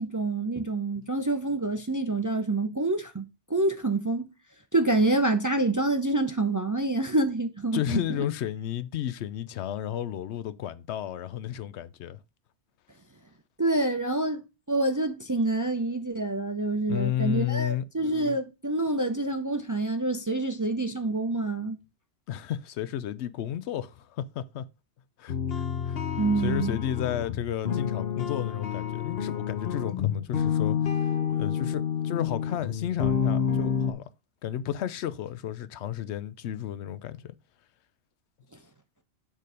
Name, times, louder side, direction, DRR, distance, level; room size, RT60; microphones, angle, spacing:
voice 1, 0.0-3.2 3.5-4.3 4.7-8.0 13.6-21.8 26.2-26.8, right 2 dB, 25° right, 0.4 m, -27 dB
voice 2, 7.7-12.2 16.9-17.8 22.3-24.7 25.2-26.0 26.4-31.0 31.3-34.0 34.4-37.3, left 11 dB, 85° left, 0.9 m, -32 dB
sound 1, 25.3-33.9, left 8 dB, 65° left, 1.0 m, -29 dB
6.6 x 3.8 x 4.9 m
omnidirectional pair, 1.1 m